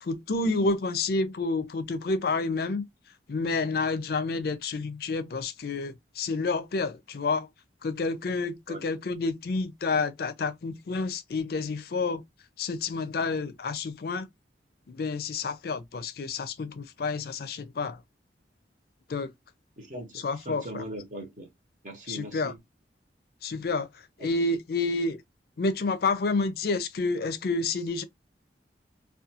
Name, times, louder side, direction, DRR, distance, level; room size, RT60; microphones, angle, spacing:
voice 1, 0.0-2.8 3.3-7.5 7.8-12.2 12.6-14.3 14.9-18.0 19.1-19.3 20.2-20.8 22.1-22.5 23.4-23.9 24.2-25.2 25.6-28.0, left 3 dB, 55° left, 0.4 m, -29 dB
voice 2, 19.8-21.5 21.8-22.6 24.2-24.4, right 1 dB, 45° right, 0.8 m, -40 dB
2.4 x 2.3 x 2.7 m
head